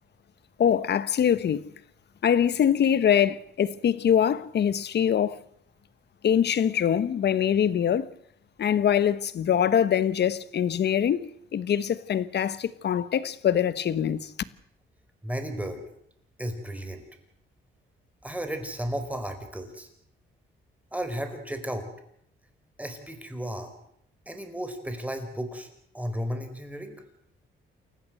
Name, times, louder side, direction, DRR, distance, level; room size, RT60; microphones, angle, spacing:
voice 1, 0.6-1.7 2.2-5.4 6.2-8.1 8.6-14.3, left 9 dB, 55° left, 1.2 m, -23 dB
voice 2, 15.2-15.8 16.4-17.0 18.2-19.9 20.9-21.9 22.8-23.7 24.3-25.7 25.9-26.9, equal, 5° right, 4.5 m, -34 dB
28.5 x 15.0 x 7.8 m
cardioid pair, 110°, 21 cm